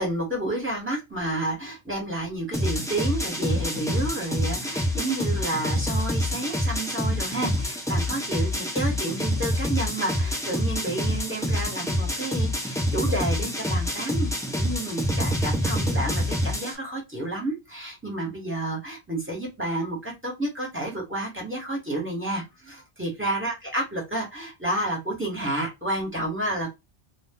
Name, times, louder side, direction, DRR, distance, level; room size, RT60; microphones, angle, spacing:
voice 1, 0.0-26.7, right 1 dB, 10° right, -2 dB, 1.3 m, -30 dB
sound 1, 2.5-16.8, equal, 5° left, 0.4 m, -27 dB
2.5 x 2.4 x 3.6 m, 0.21 s
omnidirectional pair, 1.2 m